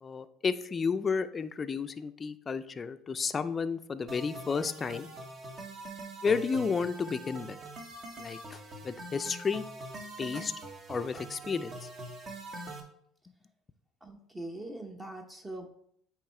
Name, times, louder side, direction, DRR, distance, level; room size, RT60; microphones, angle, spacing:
voice 1, 0.0-5.1 6.2-7.6 8.2-9.6 10.2-10.5 10.9-11.9, left 5 dB, 30° left, 11 dB, 0.4 m, -32 dB
sound 1, 4.1-12.8, right 1 dB, 40° right, 1.3 m, -43 dB
voice 2, 14.0-15.7, right 1 dB, 15° right, 3 dB, 0.9 m, -42 dB
8.6 x 3.1 x 4.4 m, 0.69 s
hypercardioid pair, 75°, 0 cm